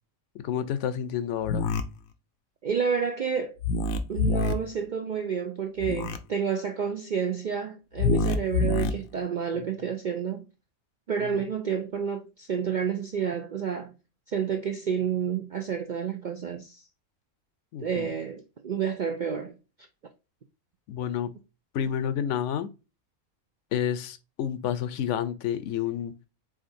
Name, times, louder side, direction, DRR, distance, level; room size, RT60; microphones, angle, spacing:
voice 1, 0.4-1.7 9.6-9.7 11.2-11.4 17.7-18.1 20.9-21.3 21.7-22.7 23.7-26.1, left 9 dB, 65° left, 0.9 m, -30 dB
sound 1, 1.4-1.8 3.6-4.5 5.8-6.2 8.0-8.9, left 3 dB, 85° left, 1.1 m, -25 dB
voice 2, 2.6-3.6 4.1-10.4 11.1-13.9 14.3-16.8 17.8-19.6, right 7 dB, 70° right, 0.4 m, -30 dB
5.0 x 3.8 x 2.6 m
omnidirectional pair, 1.4 m